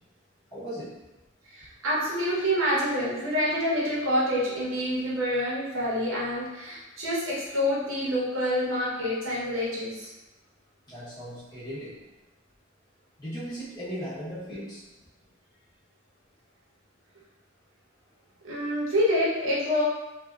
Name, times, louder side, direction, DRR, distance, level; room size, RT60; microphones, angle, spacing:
voice 1, 0.5-0.9 10.9-12.0 13.2-14.8, equal, 20° left, -11 dB, 0.9 m, -37 dB
voice 2, 1.5-10.1 18.4-19.8, equal, 90° right, -6 dB, 0.9 m, -27 dB
2.7 x 2.2 x 2.3 m, 1.0 s
head